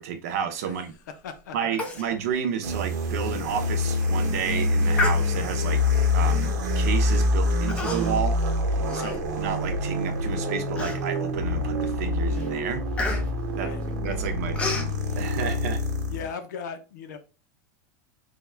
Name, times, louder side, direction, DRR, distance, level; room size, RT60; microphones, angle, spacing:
voice 1, 0.0-0.9 1.5-5.8 6.1-8.4 8.9-12.8 13.6-13.7 14.0-15.8, right 7 dB, 60° right, 0.7 m, -31 dB
voice 2, 1.1-1.8 8.9-9.2 13.5-13.8 16.1-17.2, left 6 dB, 90° left, 0.7 m, -37 dB
Human voice, 1.8-2.1 2.4-2.5 3.0-3.1 3.7-4.0 4.9-5.7 6.4-6.6 7.7-8.3 8.7-9.7 10.2-10.3 10.8-11.3 11.8-12.0 12.3-14.9, left 2 dB, 15° left, 0.5 m, -32 dB
sound 1, 2.6-16.3, left 2 dB, 90° right, 1.0 m, -26 dB
3.5 x 2.4 x 3.2 m
supercardioid pair, 170°, 9 cm